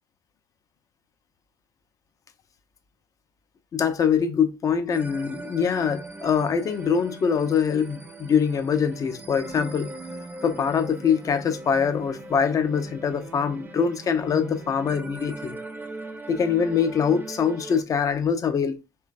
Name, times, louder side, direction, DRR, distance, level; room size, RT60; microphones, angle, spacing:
voice 1, 3.7-9.9 10.4-15.6 16.3-18.8, left 7 dB, 35° left, 0.5 m, -24 dB
sound 1, 4.9-17.8, right 2 dB, 20° right, 0.6 m, -40 dB
3.0 x 2.2 x 2.4 m
figure-of-eight pair, 60°, 10 cm